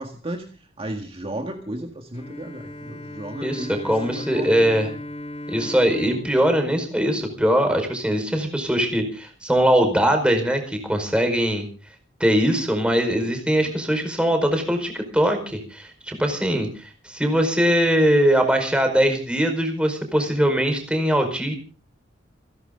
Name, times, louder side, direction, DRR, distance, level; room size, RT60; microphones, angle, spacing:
voice 1, 0.0-5.0, right 1 dB, 30° right, 3 dB, 1.8 m, -34 dB
Bowed string instrument, 2.1-7.8, left 1 dB, 35° left, 3.5 m, -38 dB
voice 2, 3.4-4.9 5.5-11.7 12.2-21.5, equal, 5° right, 5 dB, 4.8 m, -21 dB
29.5 x 11.5 x 3.8 m, 0.37 s
head